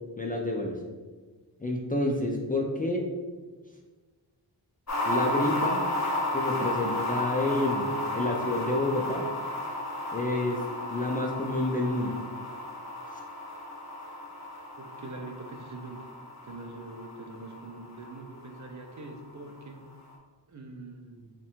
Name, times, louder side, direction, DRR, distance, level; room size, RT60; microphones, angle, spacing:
voice 1, 0.2-0.8 1.6-3.0 5.1-5.8 6.3-9.3 10.1-10.6 10.9-12.1, left 2 dB, 20° left, 0 dB, 0.3 m, -29 dB
sound 1, 4.9-19.3 19.6-19.7, left 1 dB, 40° left, 0.9 m, -33 dB
voice 2, 14.8-16.0 16.4-19.8 20.5-21.3, right 2 dB, 40° right, 3 dB, 0.5 m, -43 dB
3.5 x 2.2 x 4.3 m, 1.4 s
wide cardioid pair, 95°, 45 cm